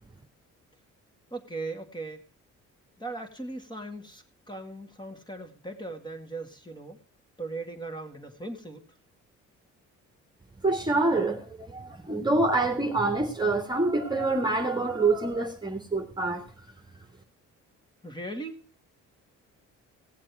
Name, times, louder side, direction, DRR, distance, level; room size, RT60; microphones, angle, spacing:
voice 1, 1.3-2.2 3.0-7.0 7.4-8.8 18.0-18.6, right 2 dB, 15° left, 5 dB, 2.3 m, -38 dB
voice 2, 10.6-16.5, right 2 dB, 15° right, 4 dB, 1.8 m, -26 dB
17.5 x 7.5 x 4.8 m, 0.38 s
cardioid pair, 90°, 30 cm